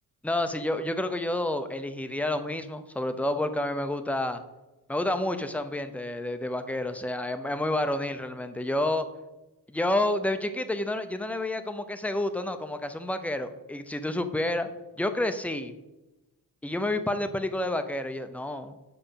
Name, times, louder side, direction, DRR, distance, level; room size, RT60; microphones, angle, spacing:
voice 1, 0.2-4.4 4.9-9.1 9.7-14.7 15.0-15.7 16.6-18.7, left 1 dB, 5° left, 9 dB, 0.7 m, -29 dB
9.3 x 4.9 x 5.7 m, 1.0 s
cardioid pair, 105°, 38 cm